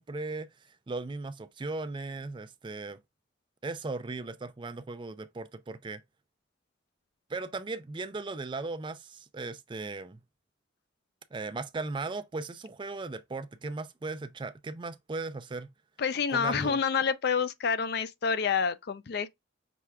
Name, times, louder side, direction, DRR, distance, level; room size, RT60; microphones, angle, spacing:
voice 1, 0.0-3.0 3.6-6.0 7.3-10.2 11.3-15.7 16.3-16.8, right 3 dB, 25° right, 0.4 m, -37 dB
voice 2, 16.0-19.3, left 6 dB, 55° left, 0.4 m, -28 dB
6.0 x 2.3 x 3.3 m
head